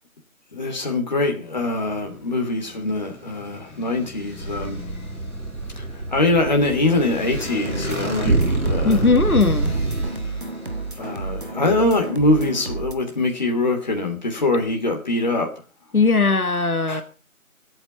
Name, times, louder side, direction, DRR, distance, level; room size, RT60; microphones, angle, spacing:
voice 1, 0.5-4.9 5.8-9.0 11.0-15.5 16.9-17.0, left 2 dB, 30° left, 2.8 m, -23 dB
Motorcycle, 1.3-11.8, left 3 dB, 5° right, 3.8 m, -38 dB
sound 1, 4.4-10.1, right 3 dB, 90° right, 1.7 m, -26 dB
sound 2, 7.3-12.9, right 3 dB, 40° right, 1.6 m, -32 dB
voice 2, 8.8-9.7 15.9-17.0, left 4 dB, 85° left, 2.0 m, -18 dB
26.5 x 8.9 x 4.2 m
figure-of-eight pair, 170°, 42 cm